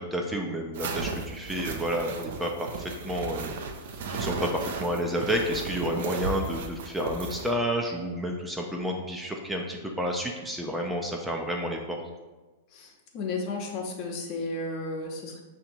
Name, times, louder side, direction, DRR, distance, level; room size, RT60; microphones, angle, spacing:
voice 1, 0.1-3.6 4.1-12.0, equal, 5° right, 1 dB, 0.4 m, -30 dB
sound 1, 0.7-7.5, right 4 dB, 65° right, 0.5 m, -35 dB
voice 2, 12.7-15.4, left 3 dB, 45° left, 1 dB, 0.9 m, -33 dB
5.7 x 2.7 x 2.6 m, 1.2 s
hypercardioid pair, 110°, 0 cm